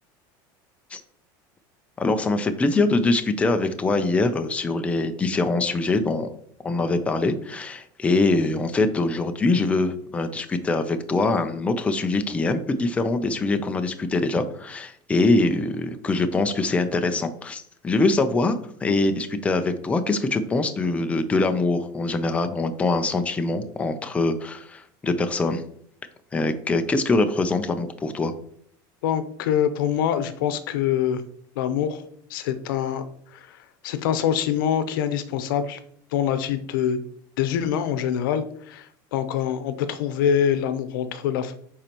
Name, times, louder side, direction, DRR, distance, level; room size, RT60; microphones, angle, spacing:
voice 1, 2.0-6.4 6.6-18.6 18.8-25.6 26.3-28.3, left 3 dB, 10° left, 7 dB, 0.5 m, -23 dB
voice 2, 29.0-31.2 31.6-32.0 32.3-33.0 33.3-33.6 33.8-35.8 36.1-37.0 37.4-38.9 39.1-41.5, left 9 dB, 90° left, 11 dB, 0.8 m, -24 dB
10.5 x 4.2 x 3.0 m, 0.62 s
supercardioid pair, 145°, 11 cm